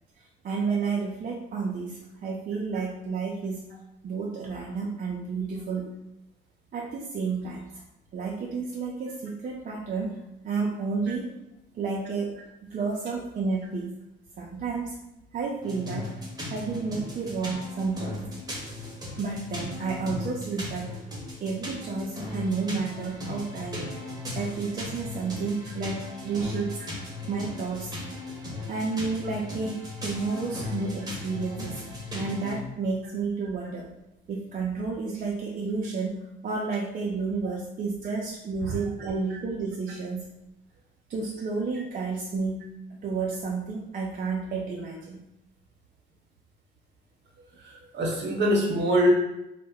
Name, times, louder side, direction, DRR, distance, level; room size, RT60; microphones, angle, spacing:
voice 1, 0.4-3.7 4.0-5.9 6.7-7.8 8.1-10.2 10.4-11.3 11.7-12.4 12.7-13.9 14.4-15.0 15.3-16.2 16.5-18.2 19.2-21.0 21.4-23.9 24.3-26.8 27.3-28.0 28.7-31.9 32.1-33.9 34.3-40.2 41.1-42.7 43.0-45.2, right 4 dB, 45° right, -2 dB, 0.4 m, -31 dB
sound 1, 15.6-32.6, left 2 dB, 20° right, 0.8 m, -37 dB
voice 2, 47.6-49.1, equal, 60° right, -1 dB, 0.8 m, -24 dB
2.1 x 2.0 x 3.5 m, 0.89 s
cardioid pair, 90°, 20 cm